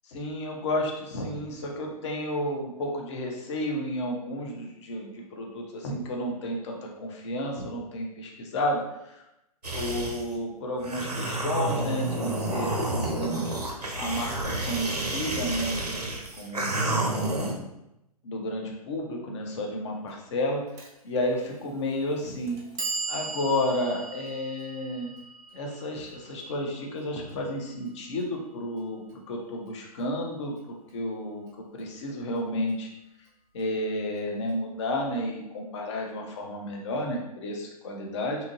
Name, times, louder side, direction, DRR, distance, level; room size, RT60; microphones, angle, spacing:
voice 1, 0.1-9.2 9.7-15.8 16.4-17.6 18.2-20.6 21.0-22.6 23.1-25.1 25.5-29.0 29.3-31.5 31.7-32.9 33.5-38.4, left 1 dB, 45° left, 0 dB, 0.6 m, -32 dB
sound 1, 9.6-10.3 10.8-17.5, right 2 dB, 90° right, 0.5 m, -30 dB
Clock, 20.8-20.9 21.8-21.9 22.5-28.5, right 4 dB, 20° right, 0.4 m, -39 dB
2.7 x 2.5 x 2.7 m, 0.86 s
figure-of-eight pair, 115°, 20 cm